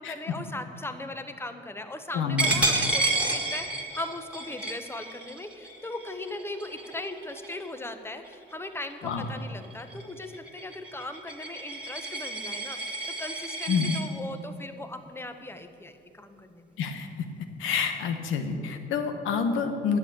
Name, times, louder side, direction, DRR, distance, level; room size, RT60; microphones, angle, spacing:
voice 1, 0.0-12.8 13.2-16.8, left 2 dB, 10° left, 8 dB, 1.0 m, -38 dB
voice 2, 2.1-2.7 9.0-9.3 13.7-14.0 16.8-17.1 17.6-20.0, left 6 dB, 90° left, 6 dB, 1.2 m, -28 dB
Coin (dropping), 2.4-7.8 8.2-8.5 8.9-14.0, right 2 dB, 5° right, 1.9 m, -31 dB
11.0 x 7.2 x 8.8 m, 2.5 s
cardioid pair, 90°, 20 cm